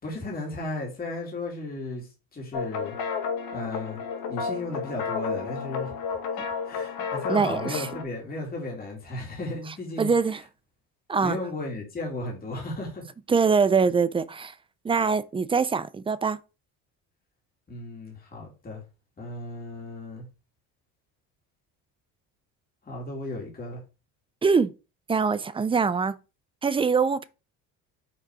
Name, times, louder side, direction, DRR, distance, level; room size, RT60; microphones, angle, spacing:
voice 1, 0.0-2.9 3.5-4.0 4.3-10.1 11.2-13.0 17.7-18.8 19.2-20.2 22.8-23.8, left 2 dB, 25° left, 2.7 m, -35 dB
sound 1, 2.5-8.0, left 5 dB, 75° left, 1.8 m, -32 dB
voice 2, 7.3-8.0 10.0-10.4 11.1-11.4 13.3-14.5 14.8-16.4 24.4-24.7 25.1-26.2 26.6-27.2, right 5 dB, 15° right, 0.4 m, -23 dB
6.0 x 3.9 x 4.8 m
cardioid pair, 120°, 38 cm